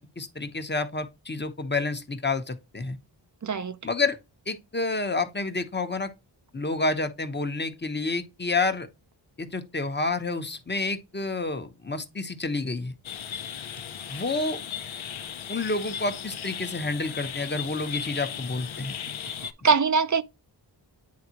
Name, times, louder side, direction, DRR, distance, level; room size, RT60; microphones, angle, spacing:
voice 1, 0.0-3.0 3.8-4.2 4.5-6.1 6.5-8.9 9.4-12.9 14.1-14.6 15.5-19.0, left 3 dB, 20° left, 0.9 m, -29 dB
voice 2, 3.4-3.8 19.4-20.2, right 5 dB, 40° right, 0.5 m, -23 dB
sound 1, 13.0-19.5, left 8 dB, 80° left, 0.7 m, -36 dB
9.5 x 3.5 x 2.9 m
wide cardioid pair, 65°, 47 cm